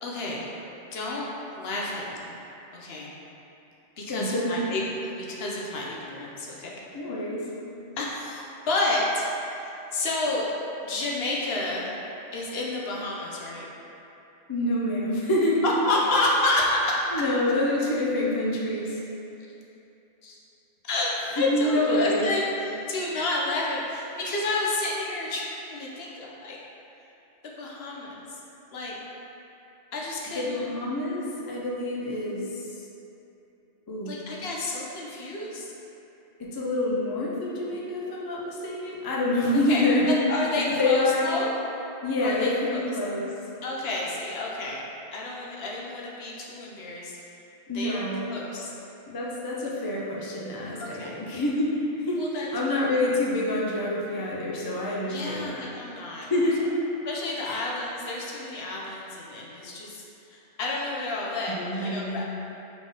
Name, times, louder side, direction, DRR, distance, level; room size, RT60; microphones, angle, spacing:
voice 1, 0.0-0.5 0.9-1.3 1.5-2.3 2.8-3.1 4.0-6.7 8.0-10.5 10.8-11.9 12.3-13.7 15.6-17.0 20.2-20.4 20.8-26.6 27.6-28.4 28.7-29.0 29.9-30.7 34.0-35.7 39.7-41.5 42.2-42.9 43.6-44.8 45.1-47.2 47.7-48.0 48.3-48.7 50.8-51.1 52.2-52.9 55.1-56.3 57.0-60.0 60.3-62.2, left 2 dB, 65° left, -3 dB, 0.9 m, -30 dB
voice 2, 4.1-4.5 6.9-7.5 14.5-15.6 17.1-19.0 21.4-22.3 30.4-32.7 33.9-34.1 36.4-40.1 40.7-41.3 42.0-43.3 47.7-48.3 49.1-55.6 56.3-56.6 57.4-57.6 61.5-62.2, left 1 dB, 30° left, -4 dB, 0.4 m, -27 dB
3.9 x 3.7 x 3.6 m, 2.9 s
omnidirectional pair, 1.2 m